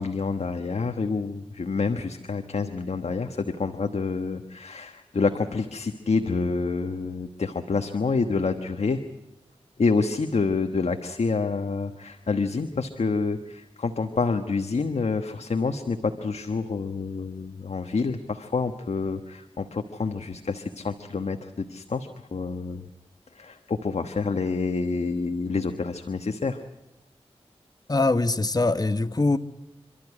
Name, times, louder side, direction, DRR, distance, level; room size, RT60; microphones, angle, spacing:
voice 1, 0.0-9.0 9.8-22.8 23.3-26.6, left 4 dB, 75° left, 6 dB, 1.3 m, -28 dB
voice 2, 27.9-29.4, left 2 dB, 35° left, 10 dB, 1.2 m, -22 dB
28.5 x 13.0 x 9.8 m, 0.94 s
cardioid pair, 50°, 11 cm